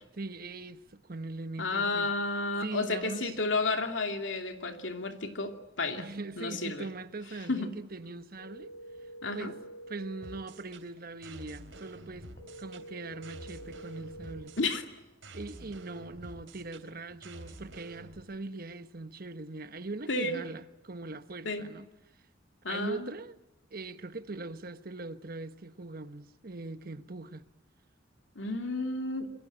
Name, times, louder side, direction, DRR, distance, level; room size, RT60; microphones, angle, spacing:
voice 1, 0.1-2.1 2.6-3.3 6.0-8.7 9.3-9.6 9.9-12.3 12.6-14.6 15.3-21.9 22.7-23.3 23.7-27.4, right 3 dB, 50° right, 1.2 m, -41 dB
voice 2, 1.6-6.1 6.4-6.9 7.5-7.7 9.2-9.5 14.6-14.9 20.1-20.4 21.4-21.7 22.6-23.1 28.3-29.3, left 3 dB, 80° left, 2.7 m, -32 dB
sound 1, 8.4-10.4 12.4-14.4, right 1 dB, 50° left, 4.1 m, -47 dB
sound 2, 10.2-18.2, right 2 dB, 90° right, 3.4 m, -49 dB
27.5 x 21.5 x 8.8 m
head